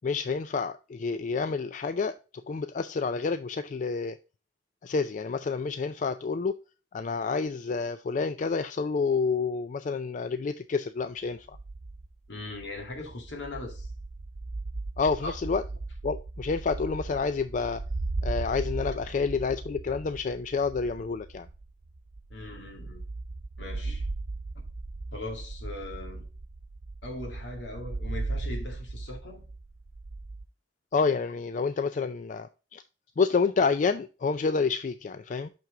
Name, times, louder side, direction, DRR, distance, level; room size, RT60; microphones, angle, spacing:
voice 1, 0.0-2.2 2.5-4.2 4.8-6.6 6.9-11.6 15.0-15.6 16.0-17.8 18.2-21.5 30.9-32.8 33.2-35.5, left 4 dB, 45° left, 0.4 m, -29 dB
sound 1, 11.5-30.4, right 2 dB, 40° right, 0.5 m, -37 dB
voice 2, 12.3-13.9 15.2-15.3 22.3-23.0 23.6-24.1 25.1-26.2 27.0-29.4, left 2 dB, 75° left, 2.2 m, -39 dB
6.0 x 6.0 x 3.7 m
head